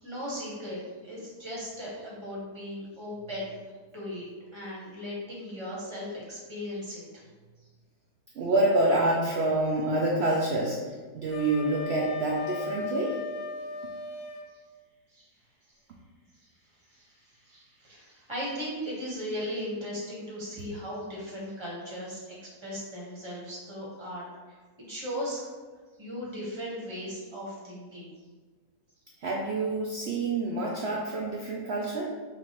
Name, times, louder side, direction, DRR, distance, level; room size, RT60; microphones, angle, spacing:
voice 1, 0.0-3.5 3.9-4.2 4.5-7.2 15.1-15.3 16.9-22.3 22.6-24.2 24.5-25.5 26.0-28.1, equal, 20° right, -6 dB, 1.0 m, -37 dB
voice 2, 8.3-10.8 11.1-13.2 29.2-32.0, right 2 dB, 85° right, -2 dB, 0.5 m, -27 dB
Wind instrument woodwind instrument, 11.3-14.5, left 3 dB, 85° left, 1.2 m, -36 dB
5.4 x 2.5 x 2.9 m, 1.4 s
omnidirectional pair, 1.7 m